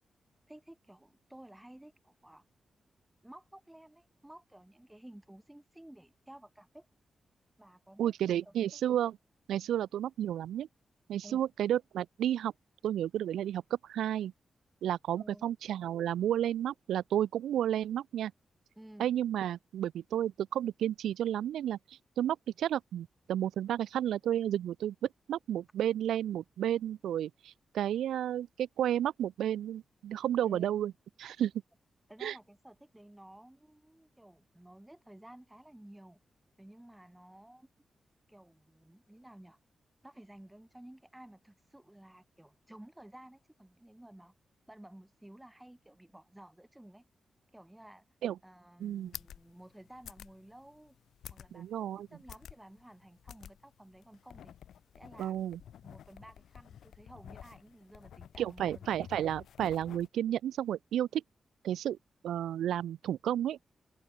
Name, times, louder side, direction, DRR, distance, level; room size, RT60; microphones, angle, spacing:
voice 1, 0.5-2.4 3.2-6.9 7.6-8.1 8.4-8.8 11.2-11.4 15.1-15.5 18.7-19.1 30.4-30.7 32.1-36.2 36.6-37.7 38.3-39.6 40.0-44.3 44.7-47.0 47.5-48.0 48.4-50.9 51.3-54.5 55.0-55.5 55.8-59.0, right 1 dB, 10° right, 3.4 m, -54 dB
voice 2, 8.0-9.1 9.5-10.7 11.1-12.5 12.8-13.6 13.9-14.3 14.8-18.3 19.0-21.8 22.2-24.9 25.3-30.9 31.2-31.5 32.2-32.3 48.2-48.4 48.8-49.1 51.5-52.1 55.2-55.6 58.4-61.2 61.6-62.0 62.2-63.6, right 11 dB, 90° right, 0.4 m, -32 dB
sound 1, 48.8-60.1, left 9 dB, 85° left, 0.8 m, -51 dB
supercardioid pair, 45°, 0 cm